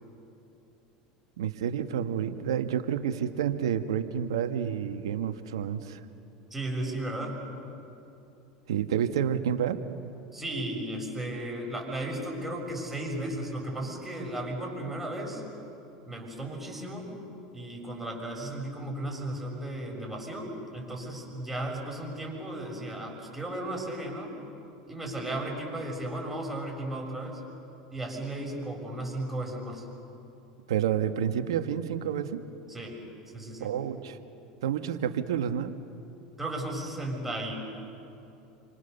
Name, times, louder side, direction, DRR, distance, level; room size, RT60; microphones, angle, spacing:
voice 1, 1.4-6.0 8.7-9.8 30.7-32.4 33.6-34.2 34.6-35.7, right 9 dB, 80° right, 9 dB, 1.3 m, -29 dB
voice 2, 6.5-7.4 10.3-15.4 16.1-17.1 17.5-24.3 24.9-27.4 27.9-29.9 32.7-33.0 33.3-33.7 36.4-37.5, right 1 dB, 10° right, 0 dB, 7.0 m, -35 dB
28.5 x 25.5 x 6.9 m, 2.8 s
hypercardioid pair, 90°, 3 cm